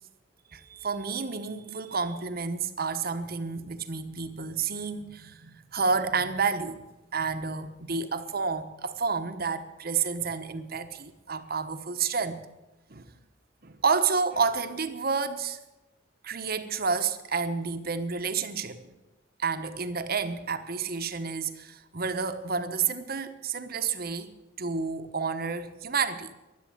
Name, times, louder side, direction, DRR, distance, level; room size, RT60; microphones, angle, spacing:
voice 1, 0.5-6.8 7.1-12.4 12.9-13.1 13.6-15.6 16.2-18.9 19.4-24.3 24.6-26.3, right 5 dB, 55° right, 9 dB, 1.3 m, -30 dB
16.0 x 11.5 x 8.0 m, 1.1 s
head